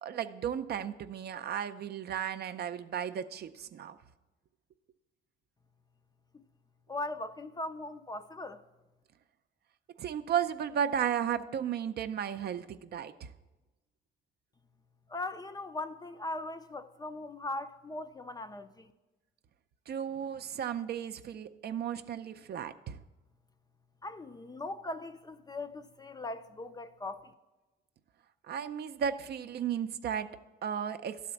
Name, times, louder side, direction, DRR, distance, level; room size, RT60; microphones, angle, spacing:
voice 1, 0.0-4.0 10.0-13.3 19.9-23.0 28.5-30.3 30.6-31.2, right 8 dB, 55° right, 0.5 m, -34 dB
voice 2, 6.9-8.6 15.1-18.9 24.0-27.3, left 2 dB, 20° left, 0.4 m, -39 dB
11.5 x 4.2 x 7.0 m
cardioid pair, 90°, 20 cm